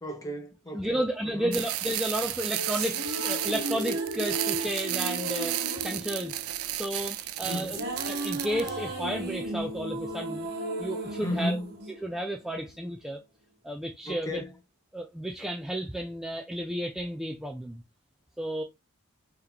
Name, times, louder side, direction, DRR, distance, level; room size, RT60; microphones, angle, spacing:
voice 1, 0.0-1.0 1.3-1.6 7.5-7.8 11.2-11.7 14.1-14.5, left 1 dB, 15° left, 0.8 m, -33 dB
voice 2, 0.7-6.3 6.7-10.5 10.8-11.6 12.0-13.2 13.6-14.4 14.9-17.8 18.4-18.6, equal, ahead, 0.3 m, -32 dB
sound 1, 1.5-8.7, right 14 dB, 85° right, 0.4 m, -33 dB
sound 2, 2.2-12.6, right 1 dB, 50° right, 1.2 m, -35 dB
3.6 x 2.9 x 3.5 m
head